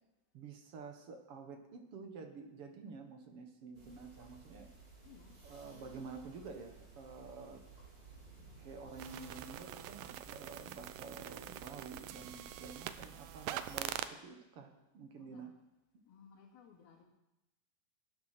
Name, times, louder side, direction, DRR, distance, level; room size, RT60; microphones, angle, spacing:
voice 1, 0.3-4.7 5.4-7.6 8.6-15.5, right 4 dB, 55° right, 4 dB, 1.7 m, -50 dB
sound 1, 3.7-13.7, right 4 dB, 35° right, 4.7 m, -57 dB
voice 2, 5.0-5.4 5.7-6.1 15.2-15.5 16.0-17.0, left 6 dB, 90° left, -1 dB, 4.2 m, -60 dB
sound 2, 9.0-14.1, right 12 dB, 80° right, 2.2 m, -44 dB
18.5 x 9.5 x 5.9 m, 0.97 s
omnidirectional pair, 4.1 m